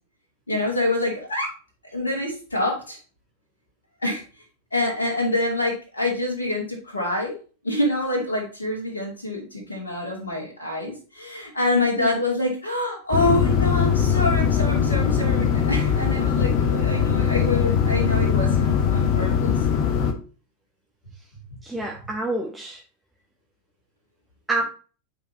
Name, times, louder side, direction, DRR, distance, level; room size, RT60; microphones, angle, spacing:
voice 1, 0.5-1.5 1.9-3.0 4.0-4.2 4.7-7.3 7.6-19.6, left 1 dB, 75° left, -1 dB, 2.4 m, -26 dB
sound 1, 13.1-20.1, left 7 dB, 40° left, 1.0 m, -21 dB
voice 2, 21.6-22.8 24.5-24.6, right 2 dB, 10° right, -1 dB, 1.1 m, -28 dB
9.1 x 4.8 x 2.9 m, 0.37 s
figure-of-eight pair, 90°, 0 cm